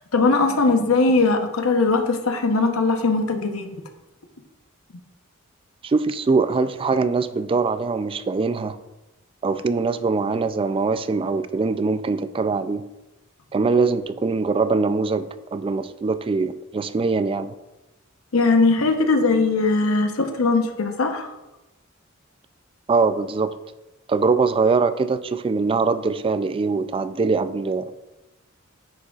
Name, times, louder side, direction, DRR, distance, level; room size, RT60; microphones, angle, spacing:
voice 1, 0.1-3.7 18.3-21.3, left 3 dB, 90° left, 6 dB, 0.9 m, -20 dB
voice 2, 5.8-8.8 9.4-12.8 13.5-17.5 22.9-23.5 24.1-28.0, right 4 dB, 25° right, 12 dB, 0.3 m, -22 dB
9.3 x 6.3 x 2.4 m, 1.0 s
head